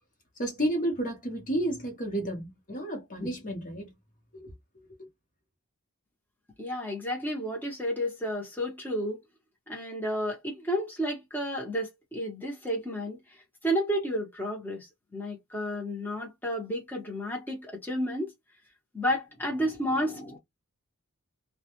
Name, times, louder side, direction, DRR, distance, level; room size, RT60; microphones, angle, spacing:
voice 1, 0.4-3.9 4.3-4.5 5.0-5.1, right 1 dB, 40° left, 0.9 m, -31 dB
voice 2, 6.6-9.2 9.7-13.2 13.6-14.9 15.1-18.3 18.9-20.4, equal, 10° left, 0.8 m, -31 dB
2.2 x 2.1 x 2.8 m
head